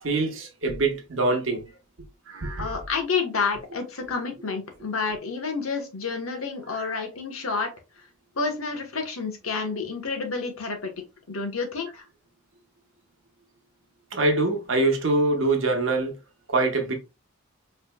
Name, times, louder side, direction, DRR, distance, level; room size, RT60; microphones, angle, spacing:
voice 1, 0.0-1.6 2.3-2.7 6.9-7.0 14.1-16.1 16.5-16.9, right 2 dB, 65° right, 1.1 m, -24 dB
voice 2, 2.6-7.7 8.4-10.9 11.3-12.0, left 4 dB, 90° left, 1.2 m, -29 dB
5.0 x 3.2 x 2.3 m
head